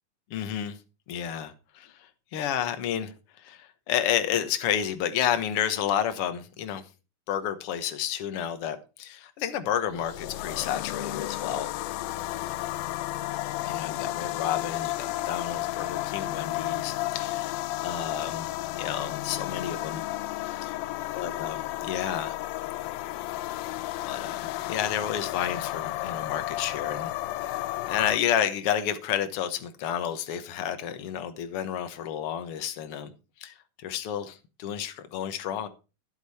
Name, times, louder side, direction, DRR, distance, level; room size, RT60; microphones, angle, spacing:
voice 1, 0.3-0.8 1.1-3.1 3.4-6.9 7.3-11.7 13.6-18.5 18.8-20.0 20.4-20.7 21.1-22.4 24.0-27.1 27.4-33.1 33.4-35.7, left 10 dB, 60° left, 1.6 m, -31 dB
sound 1, 9.9-28.2, left 16 dB, 90° left, 2.4 m, -32 dB
12.0 x 8.4 x 4.2 m
omnidirectional pair, 4.0 m